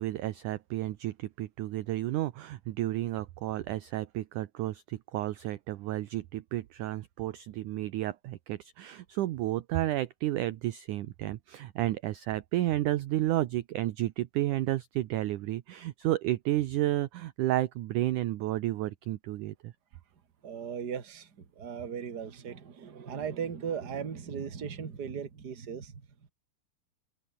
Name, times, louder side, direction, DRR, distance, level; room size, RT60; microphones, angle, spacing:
voice 1, 0.0-19.7, right 15 dB, 70° right, 2.1 m, -31 dB
voice 2, 20.4-25.9, right 7 dB, 30° right, 2.3 m, -37 dB
open air
omnidirectional pair, 4.4 m